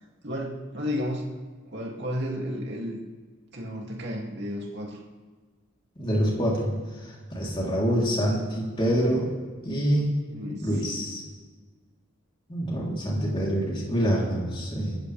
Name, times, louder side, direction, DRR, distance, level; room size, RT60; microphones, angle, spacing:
voice 1, 0.2-1.3 1.7-3.0 3.5-5.0 10.3-10.8, equal, 50° right, -1 dB, 2.6 m, -32 dB
voice 2, 6.0-6.7 7.0-9.3 9.6-10.1 10.6-11.2 12.5-15.0, equal, 20° left, -4 dB, 3.4 m, -26 dB
24.5 x 13.5 x 3.4 m, 1.4 s
head